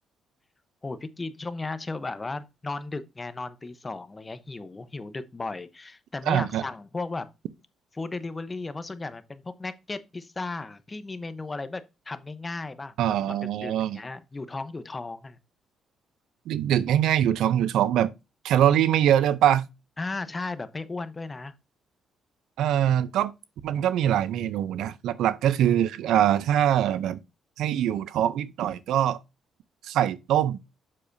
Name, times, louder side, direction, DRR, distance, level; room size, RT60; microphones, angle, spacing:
voice 1, 0.8-7.3 7.9-15.4 20.0-21.5, left 3 dB, 25° left, 0.8 m, -35 dB
voice 2, 6.3-6.6 13.0-14.0 16.5-18.1 18.4-19.6 22.6-23.3 23.6-27.2 27.6-29.2 29.8-30.6, right 11 dB, 85° right, 0.5 m, -23 dB
7.5 x 6.5 x 2.6 m
cardioid pair, 90°, 0 cm